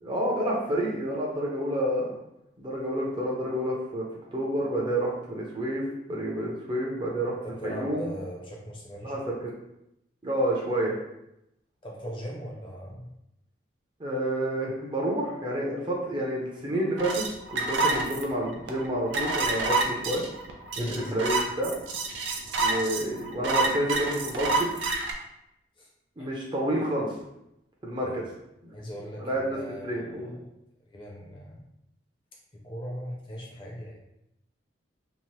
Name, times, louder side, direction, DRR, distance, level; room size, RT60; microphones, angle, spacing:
voice 1, 0.0-2.1 2.6-4.0 4.3-7.4 7.6-8.0 9.0-9.2 10.2-10.9 14.0-20.2 20.8-21.7 22.6-24.7 26.2-27.1 27.8-28.2 28.6-28.8 29.2-29.6 29.8-30.3, right 1 dB, 25° right, -3 dB, 0.5 m, -29 dB
voice 2, 7.4-9.2 11.8-13.1 20.8-21.1 25.1-25.3 25.8-25.9 26.2-26.3 28.0-28.2 28.7-30.5 30.8-31.6 32.5-34.0, equal, 25° left, -3 dB, 0.5 m, -39 dB
sound 1, 17.0-25.1, right 3 dB, 80° right, 0.4 m, -28 dB
2.8 x 2.0 x 3.0 m, 0.83 s
head